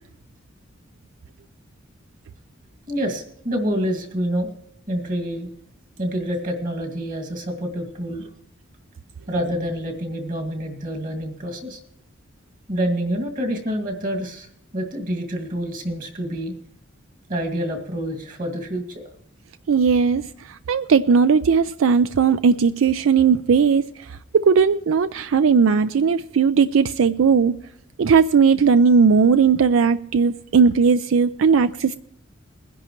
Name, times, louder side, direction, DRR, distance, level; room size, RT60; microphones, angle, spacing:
voice 1, 2.9-4.5 4.9-5.5 6.0-8.2 9.3-11.8 12.7-14.5 14.7-16.5 17.3-19.0, equal, 40° right, 2.1 m, -27 dB
voice 2, 19.7-27.5 28.0-32.0, right 5 dB, 80° right, 0.4 m, -17 dB
21.0 x 10.5 x 3.0 m
head